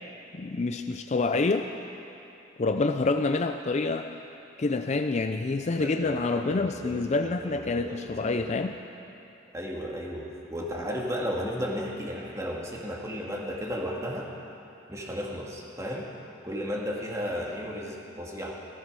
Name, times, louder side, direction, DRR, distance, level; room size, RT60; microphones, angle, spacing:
voice 1, 0.3-1.7 2.6-4.1 4.6-8.7, left 3 dB, 35° left, 7 dB, 0.4 m, -27 dB
voice 2, 5.8-8.5 9.5-14.3 14.9-16.1 16.4-18.5, equal, 15° right, -2 dB, 1.9 m, -34 dB
15.5 x 14.0 x 6.2 m, 2.8 s
head